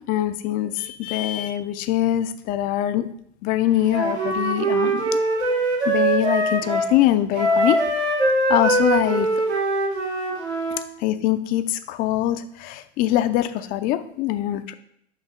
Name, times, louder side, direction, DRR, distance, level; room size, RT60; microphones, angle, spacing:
voice 1, 0.1-3.1 3.4-5.0 5.9-7.8 8.5-9.3 9.5-9.6 11.0-14.7, left 13 dB, 30° left, 11 dB, 0.4 m, -23 dB
Wind instrument woodwind instrument, 3.9-6.9 7.3-10.8, right 2 dB, 75° right, 1.7 m, -22 dB
6.1 x 3.1 x 5.4 m, 0.70 s
figure-of-eight pair, 85°, 33 cm